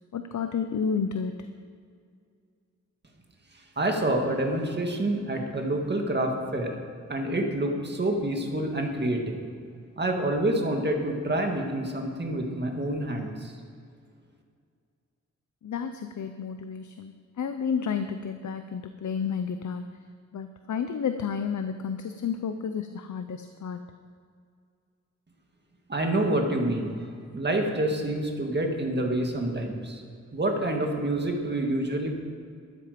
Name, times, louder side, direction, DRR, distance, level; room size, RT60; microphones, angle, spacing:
voice 1, 0.1-1.4 15.6-19.9 20.3-23.8, left 6 dB, 75° left, 8 dB, 0.6 m, -31 dB
voice 2, 3.8-6.8 7.1-9.4 10.0-13.5 25.9-27.0 27.3-30.0 30.3-32.2, right 1 dB, 35° right, 2 dB, 1.9 m, -27 dB
13.0 x 10.5 x 5.1 m, 2.3 s
wide cardioid pair, 120°, 29 cm